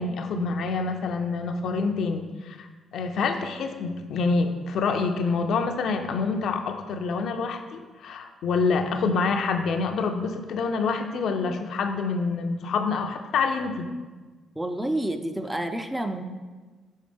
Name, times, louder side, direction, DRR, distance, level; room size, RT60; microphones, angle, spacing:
voice 1, 0.0-2.7 2.9-13.9, left 4 dB, 70° left, 5 dB, 0.5 m, -27 dB
voice 2, 14.6-16.3, right 1 dB, 10° right, 7 dB, 0.4 m, -29 dB
6.4 x 4.9 x 3.4 m, 1.3 s
cardioid pair, 90°, 0 cm